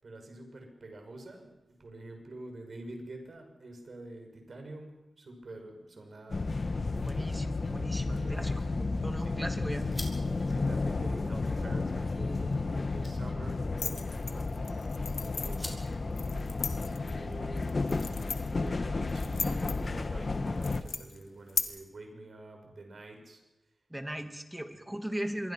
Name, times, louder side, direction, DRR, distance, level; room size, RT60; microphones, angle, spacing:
voice 1, 0.0-6.5 7.8-9.4 10.2-14.5 15.1-15.8 16.9-23.4 24.1-24.3, right 2 dB, 60° right, 4 dB, 6.5 m, -47 dB
sound 1, 6.3-20.8, left 3 dB, 50° left, 1.5 m, -32 dB
voice 2, 7.0-8.7 9.0-9.9 23.9-25.5, right 1 dB, 10° right, 6 dB, 2.7 m, -38 dB
sound 2, 8.3-18.7, left 1 dB, 15° left, 5.9 m, -52 dB
sound 3, 13.8-21.6, left 5 dB, 80° left, 1.8 m, -39 dB
26.5 x 22.5 x 5.9 m, 1.0 s
cardioid pair, 60°, 0 cm